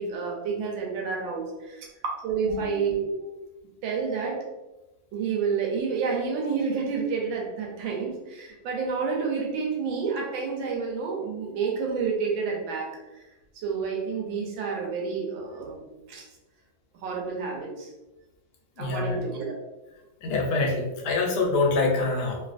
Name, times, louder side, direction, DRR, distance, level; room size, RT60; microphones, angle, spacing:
voice 1, 0.0-1.9 2.2-3.1 3.8-4.4 5.1-12.9 13.6-16.2 17.0-17.9 18.8-19.5, right 5 dB, 85° right, -1 dB, 1.4 m, -29 dB
voice 2, 18.8-19.2 20.2-22.4, left 3 dB, 70° left, 1 dB, 1.0 m, -25 dB
3.2 x 2.5 x 2.4 m, 1.1 s
omnidirectional pair, 2.1 m